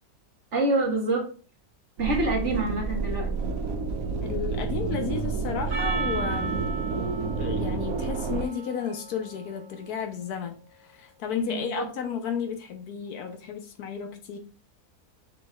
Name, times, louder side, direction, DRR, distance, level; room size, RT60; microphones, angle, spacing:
voice 1, 0.5-1.3 2.0-3.3 11.4-11.9, right 2 dB, 50° right, 1.4 m, -26 dB
sound 1, 2.0-8.5, right 4 dB, 70° right, 1.0 m, -29 dB
voice 2, 4.2-6.6 7.4-14.4, left 7 dB, 75° left, 1.2 m, -33 dB
Percussion, 5.7-10.3, right 3 dB, 85° right, 1.6 m, -36 dB
6.5 x 3.0 x 2.3 m
omnidirectional pair, 1.7 m